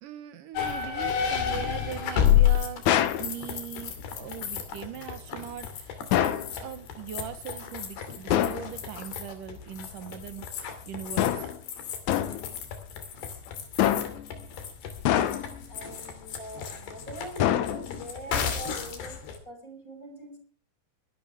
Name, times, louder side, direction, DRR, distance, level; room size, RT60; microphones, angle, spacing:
voice 1, 0.0-2.9 3.2-11.5, right 10 dB, 65° right, 12 dB, 2.5 m, -40 dB
sound 1, 0.5-19.4, left 9 dB, 85° left, 4.6 m, -31 dB
sound 2, 2.9-3.3 6.1-6.5 8.3-8.7 11.2-11.6 12.1-12.5 13.8-14.3 15.1-15.6 17.4-18.1, left 11 dB, 70° left, 1.9 m, -25 dB
voice 2, 15.7-20.4, right 1 dB, 20° left, 3 dB, 6.4 m, -43 dB
22.5 x 12.0 x 3.5 m, 0.40 s
omnidirectional pair, 4.5 m